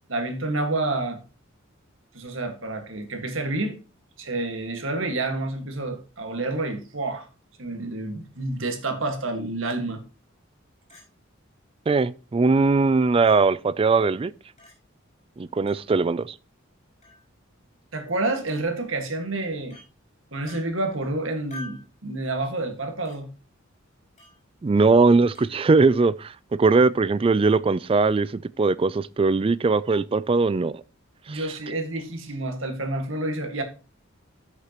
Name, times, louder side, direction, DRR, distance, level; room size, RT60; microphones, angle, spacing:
voice 1, 0.1-1.2 2.1-3.8 4.2-7.3 7.6-10.0 17.9-19.8 20.3-23.3 31.3-33.6, right 2 dB, 75° right, 1.8 m, -29 dB
Chink clink, 10.9-11.1 12.0-12.1 13.2-13.4 14.6-14.7 15.7-15.8 17.0-17.2 18.5-18.6 19.7-19.9 20.5-20.6 21.5-21.9 23.0-23.2 24.2-24.4 25.3-25.5, left 1 dB, 35° left, 5.5 m, -45 dB
voice 2, 11.9-14.3 15.4-16.3 24.6-26.3 26.6-30.8 31.3-31.4, right 3 dB, 25° right, 0.3 m, -20 dB
13.0 x 6.6 x 3.0 m
head